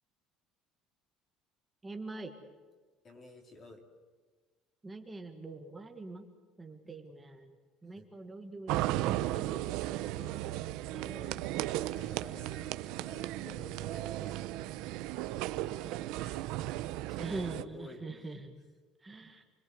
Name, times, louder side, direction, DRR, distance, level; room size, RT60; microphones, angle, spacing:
voice 1, 1.8-2.4 4.8-6.2 6.6-7.6 7.8-10.3 10.9-11.4 15.6-16.2 17.2-18.6 19.0-19.4, right 3 dB, 10° right, 4 dB, 1.8 m, -44 dB
voice 2, 3.0-3.8 7.9-8.1 10.2-10.5 11.0-11.6 11.8-14.6 16.2-16.5 17.1-18.1, left 2 dB, 25° left, 3 dB, 3.2 m, -52 dB
sound 1, 8.7-17.6, right 15 dB, 70° right, 1.0 m, -35 dB
Speech, 9.7-9.8 10.3-10.6 11.0-11.1 11.4-12.1 12.5-12.7 13.0-13.4 13.7-14.8, right 11 dB, 45° right, 1.5 m, -48 dB
29.0 x 22.0 x 8.0 m, 1.4 s
cardioid pair, 175°, 0 cm